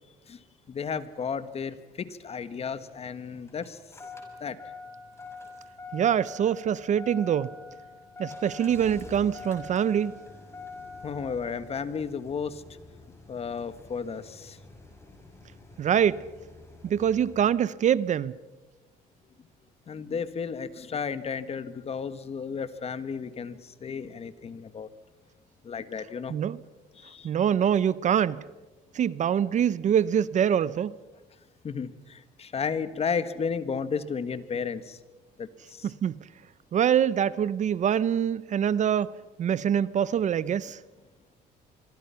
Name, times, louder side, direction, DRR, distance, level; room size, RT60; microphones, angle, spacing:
voice 1, 0.7-3.8 4.4-4.6 11.0-12.6 13.3-14.6 19.9-24.9 25.6-26.3 26.9-27.3 31.6-35.0 35.4-35.9, left 6 dB, 35° left, 1.5 m, -33 dB
Engine starting, 2.5-17.4, left 3 dB, 15° left, 6.1 m, -46 dB
voice 2, 5.9-7.5 8.2-10.2 15.8-16.2 16.8-18.4 26.3-26.6 27.2-28.5 28.9-30.9 35.8-36.2 36.7-40.8, right 9 dB, 45° right, 0.6 m, -25 dB
26.0 x 24.0 x 5.8 m
cardioid pair, 110°, 17 cm